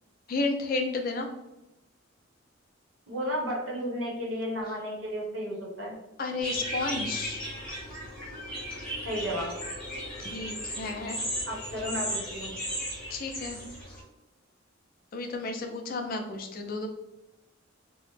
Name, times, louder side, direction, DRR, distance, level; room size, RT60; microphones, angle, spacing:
voice 1, 0.3-1.3 6.2-7.4 10.2-11.2 13.1-13.6 15.1-16.9, left 3 dB, 45° left, 4 dB, 0.4 m, -32 dB
voice 2, 3.1-6.0 9.0-9.5 11.5-12.5, equal, 65° right, -2 dB, 1.0 m, -33 dB
sound 1, 6.4-14.0, equal, 5° left, 1.0 m, -36 dB
2.9 x 2.1 x 3.0 m, 0.97 s
head